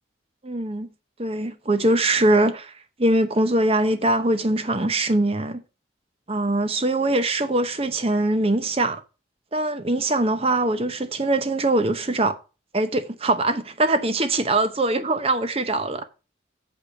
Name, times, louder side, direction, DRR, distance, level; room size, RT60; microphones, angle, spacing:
voice 1, 0.4-0.9 1.2-2.7 3.0-5.6 6.3-9.0 9.5-12.4 12.7-16.0, right 2 dB, 30° right, 0.9 m, -22 dB
8.4 x 4.9 x 6.6 m
head